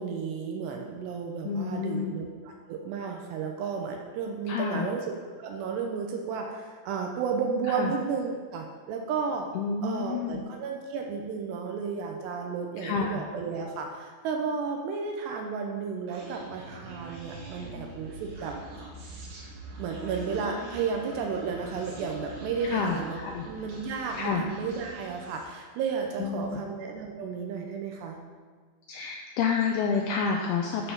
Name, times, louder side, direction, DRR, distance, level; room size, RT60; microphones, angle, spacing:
voice 1, 0.0-5.1 5.4-9.5 9.8-18.6 19.8-28.2, right 5 dB, 80° right, 2 dB, 2.8 m, -33 dB
voice 2, 1.4-2.1 4.5-4.9 7.7-7.9 9.5-10.4 12.8-13.2 22.7-23.5 24.2-24.4 26.2-26.6 28.9-30.9, left 5 dB, 90° left, 1 dB, 2.2 m, -29 dB
Human voice, 16.1-25.6, right 2 dB, 60° right, 3.6 m, -43 dB
12.5 x 4.7 x 5.4 m, 1.5 s
omnidirectional pair, 5.2 m